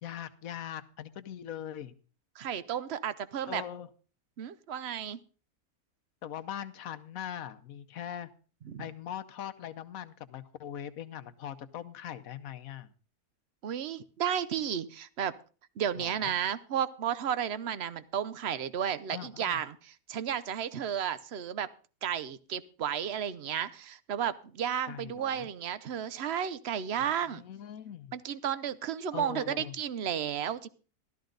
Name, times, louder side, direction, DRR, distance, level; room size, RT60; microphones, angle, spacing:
voice 1, 0.0-1.9 3.4-3.9 6.2-8.3 8.8-12.9 16.0-16.3 19.1-19.6 24.9-25.5 27.0-28.1 29.1-29.7, left 10 dB, 70° left, 11 dB, 1.2 m, -41 dB
voice 2, 2.4-3.6 4.4-5.2 8.6-8.9 13.6-15.3 15.8-21.7 22.0-27.4 28.1-30.7, right 9 dB, 55° right, 15 dB, 0.8 m, -33 dB
13.0 x 13.0 x 3.9 m, 0.37 s
omnidirectional pair, 1.6 m